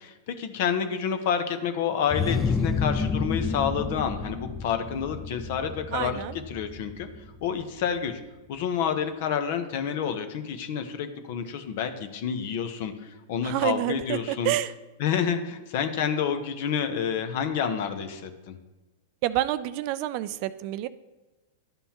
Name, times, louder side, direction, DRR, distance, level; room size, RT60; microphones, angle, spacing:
voice 1, 0.0-7.1 7.4-8.2 8.5-14.5 15.0-18.6, left 7 dB, 60° left, 8 dB, 0.9 m, -29 dB
sound 1, 2.1-7.6, left 4 dB, 15° left, 0.4 m, -30 dB
voice 2, 5.9-6.3 13.4-14.7 19.2-20.9, right 14 dB, 50° right, 14 dB, 0.4 m, -28 dB
11.5 x 5.4 x 2.9 m, 1.1 s
hypercardioid pair, 115°, 0 cm